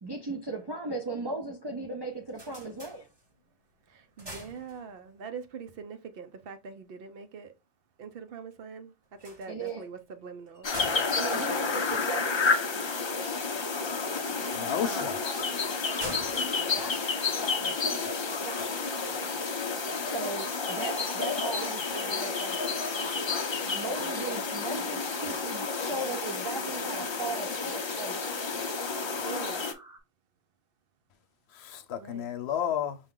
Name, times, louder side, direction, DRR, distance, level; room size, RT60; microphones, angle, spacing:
voice 1, 0.0-3.1 9.5-9.8 11.1-12.4 16.7-17.3 17.6-18.1 18.4-18.9 20.0-22.9 23.7-28.5, right 2 dB, 40° right, 0.3 m, -37 dB
sound 1, 2.1-3.6 4.0-5.3 9.1-12.5 14.6-17.7, right 1 dB, 25° right, 1.0 m, -47 dB
voice 2, 3.9-7.5 8.0-8.9 9.2-10.7 14.8-15.7 16.5-16.9 23.6-24.0 29.2-29.6 32.0-32.3, right 5 dB, 65° right, 0.8 m, -43 dB
sound 2, 10.6-29.7, left 4 dB, 45° left, 0.4 m, -30 dB
sound 3, 10.9-30.0, right 2 dB, 80° right, 1.3 m, -52 dB
voice 3, 14.5-15.2 31.5-33.0, left 9 dB, 75° left, 0.9 m, -32 dB
5.5 x 2.3 x 3.6 m
omnidirectional pair, 1.1 m